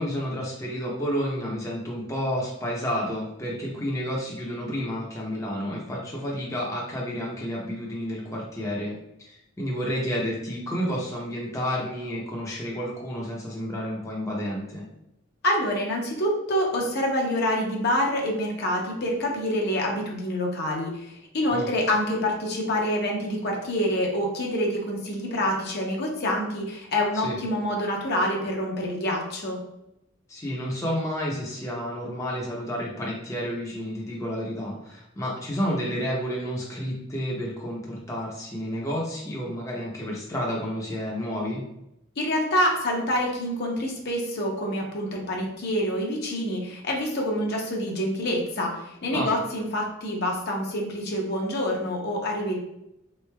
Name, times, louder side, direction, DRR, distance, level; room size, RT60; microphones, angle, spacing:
voice 1, 0.0-8.9 9.2-14.9 21.5-21.7 27.1-27.4 30.3-41.6 49.1-49.3, equal, 15° left, -4 dB, 0.6 m, -30 dB
voice 2, 15.4-29.6 42.2-52.6, left 1 dB, 50° left, 0 dB, 0.7 m, -26 dB
3.8 x 3.1 x 2.2 m, 0.84 s
head